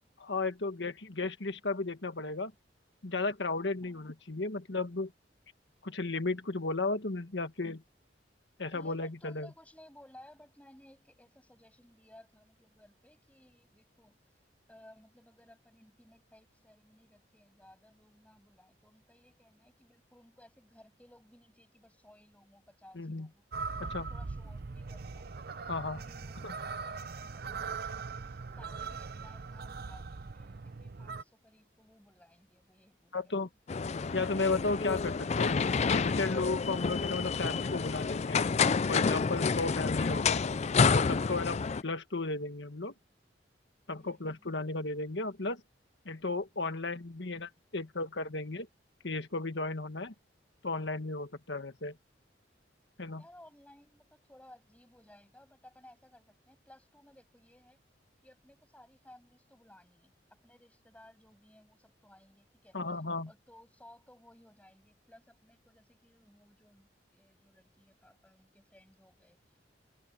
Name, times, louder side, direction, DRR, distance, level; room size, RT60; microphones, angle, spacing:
voice 1, 0.2-2.5 3.0-5.1 5.8-7.8 8.6-9.5 22.9-23.3 23.8-24.1 25.7-26.0 26.4-26.5 33.1-33.5 34.1-38.4 38.9-40.4 40.9-42.9 43.9-45.6 46.0-48.7 49.0-50.1 50.6-52.0 53.0-53.2 62.7-63.3, left 3 dB, 70° left, 1.6 m, -34 dB
voice 2, 3.8-4.2 8.7-23.5 23.8-25.3 25.8-33.4 44.0-44.6 53.2-57.8 58.2-62.8 63.3-69.8, left 1 dB, 10° left, 7.2 m, -59 dB
sound 1, 23.5-31.2, right 4 dB, 55° right, 0.7 m, -41 dB
sound 2, 33.7-41.8, left 5 dB, 35° left, 0.4 m, -29 dB
head